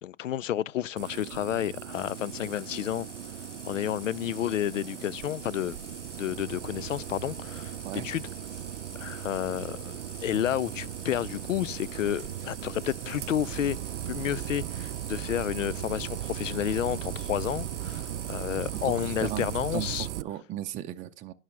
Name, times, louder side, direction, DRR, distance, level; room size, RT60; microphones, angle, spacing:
voice 1, 0.0-3.1 3.6-5.8 6.2-8.2 9.0-13.8 14.1-20.1, left 11 dB, 85° left, 0.5 m, -31 dB
sound 1, 1.0-20.2, right 13 dB, 70° right, 0.5 m, -37 dB
Water tap faucet, 1.9-19.9, left 10 dB, 70° left, 0.9 m, -50 dB
voice 2, 18.7-21.3, right 12 dB, 20° right, 0.5 m, -36 dB
11.0 x 6.3 x 4.6 m
hypercardioid pair, 115°, 37 cm